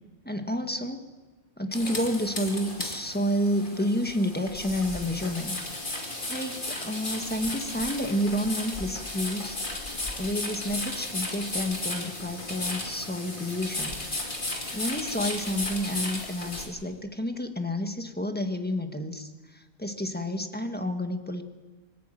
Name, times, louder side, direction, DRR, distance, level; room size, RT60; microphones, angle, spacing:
voice 1, 0.2-1.1 1.6-5.6 6.3-9.6 10.2-14.0 14.7-21.4, equal, 10° left, 6 dB, 1.6 m, -30 dB
sound 1, 1.7-16.7, left 2 dB, 45° left, 2.8 m, -34 dB
24.5 x 14.5 x 9.1 m, 1.3 s
omnidirectional pair, 1.2 m